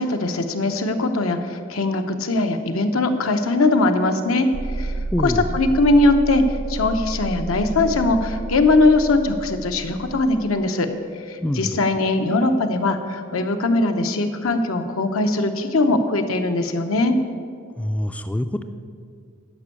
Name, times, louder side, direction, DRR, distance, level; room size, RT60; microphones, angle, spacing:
voice 1, 0.0-4.5 4.8-4.9 5.2-6.4 6.7-10.9 11.3-17.1, left 2 dB, 85° left, 6 dB, 0.9 m, -20 dB
sound 1, 4.5-10.7, right 3 dB, 75° right, 0.5 m, -30 dB
voice 2, 5.1-5.5 11.4-11.7 17.8-18.6, left 1 dB, 5° left, 9 dB, 0.3 m, -25 dB
11.5 x 5.4 x 8.4 m, 2.2 s
head